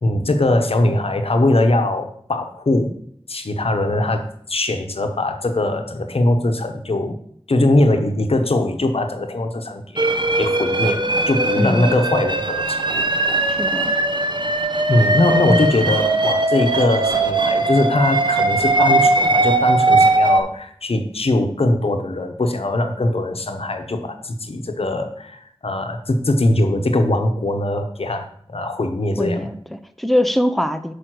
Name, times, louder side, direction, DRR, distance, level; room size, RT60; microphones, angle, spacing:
voice 1, 0.0-2.9 3.3-7.2 7.5-12.9 14.9-29.5, left 2 dB, 80° left, 6 dB, 0.9 m, -21 dB
sound 1, 10.0-20.4, right 2 dB, 50° right, 0.8 m, -19 dB
voice 2, 11.6-12.0 13.5-13.9 29.2-30.9, left 1 dB, ahead, 9 dB, 0.6 m, -22 dB
6.4 x 5.1 x 6.1 m, 0.66 s
wide cardioid pair, 45°, 10 cm